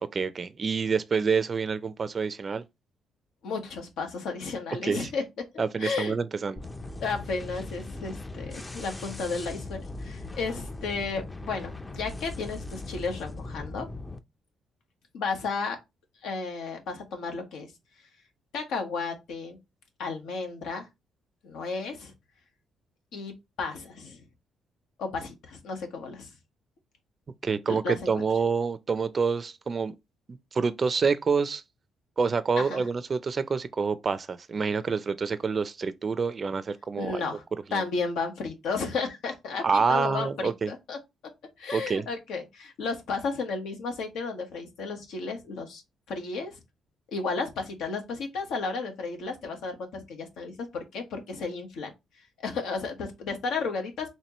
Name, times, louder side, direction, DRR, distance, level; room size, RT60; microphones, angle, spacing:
voice 1, 0.1-2.6 4.8-5.1 5.6-6.6 27.4-29.9 30.3-31.6 32.2-37.2 37.7-37.8 39.6-40.7 41.7-42.1, right 5 dB, 40° right, 0.4 m, -27 dB
voice 2, 3.4-5.2 5.5-6.1 7.0-13.9 15.1-15.8 16.2-17.7 18.5-19.6 20.0-20.9 21.4-22.1 23.1-24.2 25.0-26.3 27.7-28.2 32.6-32.8 37.0-37.4 37.7-41.0 41.6-45.8 46.1-46.6 47.1-51.9 52.4-54.2, left 4 dB, 85° left, 1.2 m, -33 dB
sound 1, 6.6-14.2, left 2 dB, 20° left, 0.5 m, -39 dB
4.3 x 2.9 x 3.0 m
cardioid pair, 90°, 0 cm